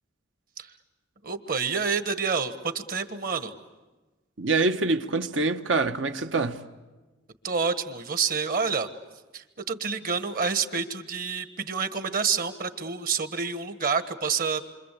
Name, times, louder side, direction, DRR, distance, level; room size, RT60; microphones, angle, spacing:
voice 1, 1.2-3.5 7.4-8.9 9.3-14.6, right 5 dB, 50° right, 1.4 m, -28 dB
voice 2, 4.4-6.6, right 3 dB, 80° right, 1.3 m, -25 dB
28.0 x 25.5 x 8.4 m
head